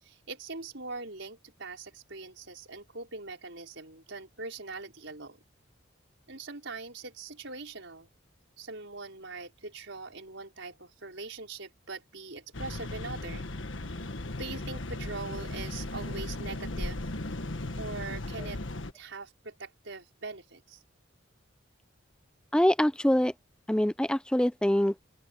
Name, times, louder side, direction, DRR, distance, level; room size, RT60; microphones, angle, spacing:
voice 1, 0.0-5.4 6.3-8.1 8.6-13.5 14.4-17.0 17.8-18.6 18.9-20.8, right 3 dB, 65° right, 5.1 m, -42 dB
sound 1, 12.5-18.9, left 2 dB, 75° left, 1.5 m, -36 dB
voice 2, 22.5-23.3 23.7-24.9, left 1 dB, 5° left, 0.4 m, -24 dB
open air
head